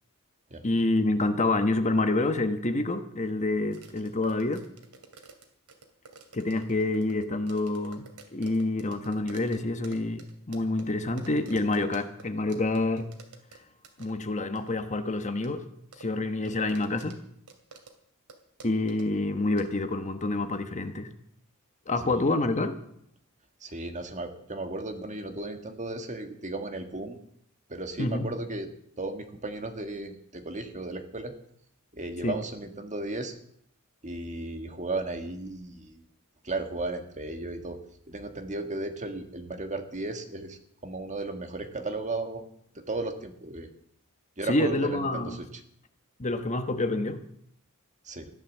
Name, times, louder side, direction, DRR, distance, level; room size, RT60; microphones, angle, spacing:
voice 1, 0.6-4.6 6.3-13.1 14.0-15.6 16.0-17.1 18.6-21.1 21.9-22.8 28.0-28.3 32.2-32.4 44.4-45.4 46.2-47.2, left 2 dB, 35° left, 8 dB, 1.1 m, -27 dB
sound 1, 3.7-12.2 12.5-13.6 13.8-14.1 14.5-14.7 15.4-15.5 15.9-17.2 17.5-17.9 18.3-18.4 18.6-19.1 19.6-19.7, right 4 dB, 85° right, 2.6 m, -50 dB
voice 2, 23.6-27.1 27.7-28.7 29.0-31.3 31.9-33.4 34.0-36.0 36.4-37.8 38.1-42.4 42.7-43.7 44.4-45.5 48.0-48.3, right 2 dB, 35° right, 6 dB, 1.7 m, -35 dB
14.5 x 11.5 x 7.3 m, 0.69 s
head